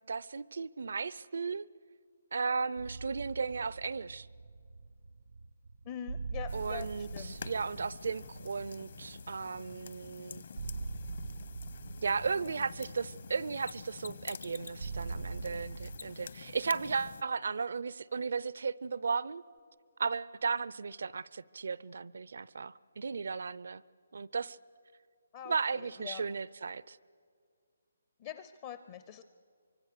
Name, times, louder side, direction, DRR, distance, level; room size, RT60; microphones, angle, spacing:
voice 1, 0.1-1.7 2.3-4.3 6.5-10.4 12.0-19.4 20.0-23.8 24.1-24.6 25.5-27.0, right 5 dB, 65° right, 20 dB, 0.5 m, -35 dB
sound 1, 2.8-16.0, right 4 dB, 80° right, 1.2 m, -44 dB
voice 2, 5.9-6.9 7.1-7.3 25.3-26.2 28.2-29.2, left 10 dB, 25° left, 11 dB, 0.5 m, -44 dB
sound 2, 6.5-17.2, left 6 dB, 50° left, 0.9 m, -49 dB
Mechanisms, 13.6-14.9 15.9-16.3 16.7-16.8 19.6-19.7, left 5 dB, 75° left, 0.9 m, -46 dB
24.5 x 24.0 x 6.7 m, 2.2 s
hypercardioid pair, 175°, 0 cm